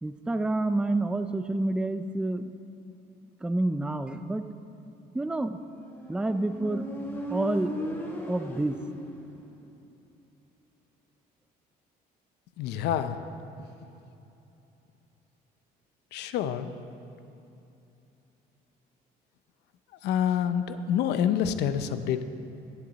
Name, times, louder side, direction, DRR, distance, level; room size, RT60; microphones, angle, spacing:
voice 1, 0.0-2.5 3.4-4.5 5.1-5.6 6.1-6.9 7.3-7.8 8.3-8.8, right 2 dB, 5° right, 10 dB, 0.4 m, -28 dB
Motorcycle, 5.9-9.5, equal, 15° left, 1.6 m, -37 dB
voice 2, 12.6-13.2 16.1-16.7 20.0-22.2, left 9 dB, 80° left, 10 dB, 0.6 m, -27 dB
15.5 x 7.7 x 4.0 m, 2.9 s
cardioid pair, 110°, 17 cm